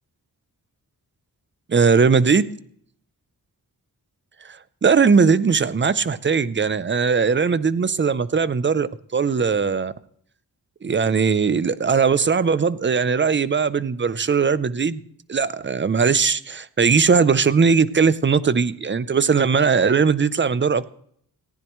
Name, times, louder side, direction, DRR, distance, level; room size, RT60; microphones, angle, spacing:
voice 1, 1.7-2.5 4.4-9.9 10.8-15.0 15.3-20.9, right 5 dB, 30° right, 16 dB, 0.6 m, -19 dB
18.0 x 15.5 x 3.1 m, 0.64 s
wide cardioid pair, 165°, 37 cm